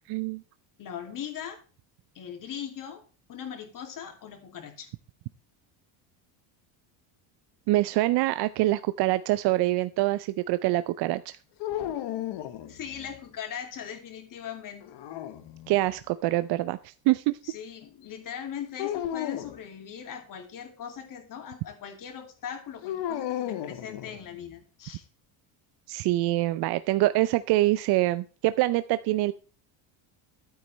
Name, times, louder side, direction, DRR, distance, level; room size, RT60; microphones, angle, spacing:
voice 1, 0.1-0.4 7.7-11.4 15.7-17.4 25.9-29.3, right 17 dB, 55° right, 14 dB, 0.6 m, -25 dB
voice 2, 0.8-1.6 2.1-3.0 3.3-4.9 12.6-14.9 17.4-25.0, left 8 dB, 40° left, 6 dB, 2.6 m, -40 dB
sound 1, 11.6-13.2 14.8-15.9 18.8-19.6 22.8-24.5, left 11 dB, 60° left, 1.3 m, -34 dB
11.5 x 9.5 x 3.2 m, 0.37 s
cardioid pair, 145°, 48 cm